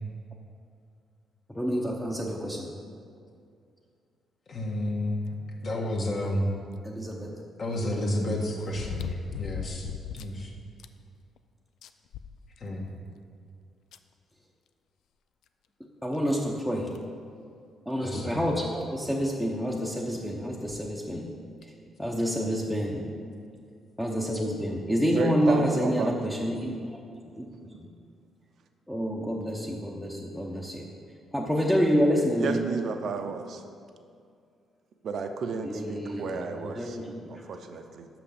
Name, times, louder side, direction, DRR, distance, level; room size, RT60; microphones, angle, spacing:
voice 1, 1.5-2.7 6.8-7.3 16.0-17.0 17.9-21.3 22.0-23.1 24.0-27.9 28.9-30.9 31.3-32.8 35.6-37.5, equal, 5° left, -3 dB, 0.8 m, -28 dB
voice 2, 4.5-5.3 5.6-6.5 7.6-9.9 10.1-10.5 12.6-12.8 18.0-18.4, left 1 dB, 50° left, -2 dB, 1.5 m, -30 dB
sound 1, 6.7-6.8 8.7-10.4 10.8-10.9 11.4-11.5 11.8-12.9 13.9-14.0 15.5-15.6 16.1-16.2 16.9-17.2 18.5-18.6 18.8-18.9 20.6-20.9 21.6-21.7, left 9 dB, 80° left, 0.3 m, -38 dB
voice 3, 25.1-26.1 32.4-33.6 35.0-37.0 37.3-38.1, right 5 dB, 60° right, 6 dB, 0.6 m, -33 dB
5.9 x 5.9 x 6.9 m, 2.3 s
cardioid pair, 90°, 0 cm